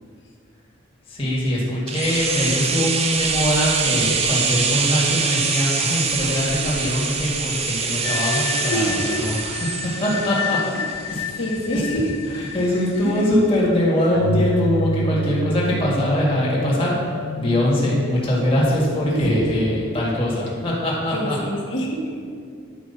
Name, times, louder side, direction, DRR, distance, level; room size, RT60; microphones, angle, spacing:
voice 1, 1.1-10.9 11.1-11.2 11.7-11.8 12.3-17.0 17.4-21.4, left 1 dB, 25° left, -6 dB, 1.9 m, -22 dB
sound 1, 1.9-11.7 12.0-12.1, right 5 dB, 30° right, 0.6 m, -24 dB
sound 2, 8.0-14.9 15.2-15.3 15.8-21.2, left 8 dB, 75° left, 0.3 m, -33 dB
voice 2, 8.7-9.2 11.0-12.1 12.7-13.2 19.0-19.6 21.1-22.1, right 1 dB, 60° left, -1 dB, 1.5 m, -27 dB
Keyboard (musical), 14.1-17.7, right 2 dB, 65° right, 0.9 m, -28 dB
10.5 x 4.8 x 5.6 m, 2.3 s
head